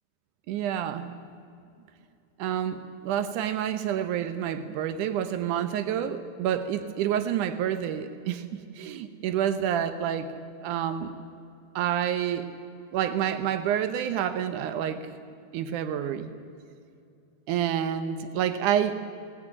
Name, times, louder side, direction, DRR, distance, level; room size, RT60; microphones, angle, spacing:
voice 1, 0.5-1.1 2.4-10.3 10.6-11.1 11.8-12.5 12.9-15.1 15.5-16.3 17.5-18.9, right 9 dB, 85° right, 10 dB, 1.7 m, -28 dB
20.5 x 18.5 x 9.9 m, 2.5 s
omnidirectional pair, 5.0 m